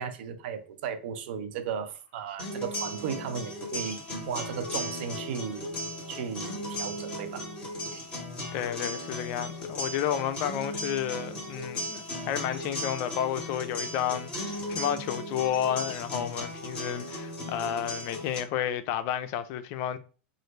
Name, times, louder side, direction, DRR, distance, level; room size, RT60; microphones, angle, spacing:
voice 1, 0.0-4.0 4.3-7.5, right 7 dB, 70° right, 0.6 m, -35 dB
sound 1, 2.4-18.4, left 1 dB, 15° left, 1.8 m, -36 dB
voice 2, 8.5-20.0, left 10 dB, 50° left, 0.5 m, -31 dB
3.1 x 2.5 x 3.2 m
supercardioid pair, 125°, 6 cm